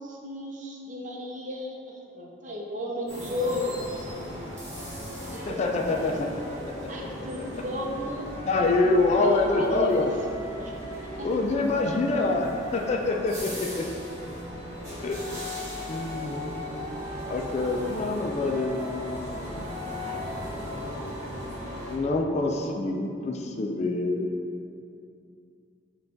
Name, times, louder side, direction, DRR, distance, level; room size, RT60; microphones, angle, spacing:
voice 1, 0.0-4.1 5.1-5.2 5.5-5.6 5.9-6.1 6.9-8.3 8.6-8.9 9.2-10.1 10.6-10.8 11.2-11.3, equal, 45° right, -2 dB, 0.6 m, -34 dB
sound 1, 3.1-22.0, equal, 15° right, 1.3 m, -39 dB
sound 2, 4.7-21.9, left 3 dB, 85° right, 0.8 m, -41 dB
voice 2, 5.5-6.1 8.5-10.1 11.2-13.8 15.0-15.2 15.9-16.8 17.3-19.7 21.9-24.3, left 3 dB, 35° left, 2 dB, 0.3 m, -26 dB
5.5 x 2.3 x 3.8 m, 2.6 s
head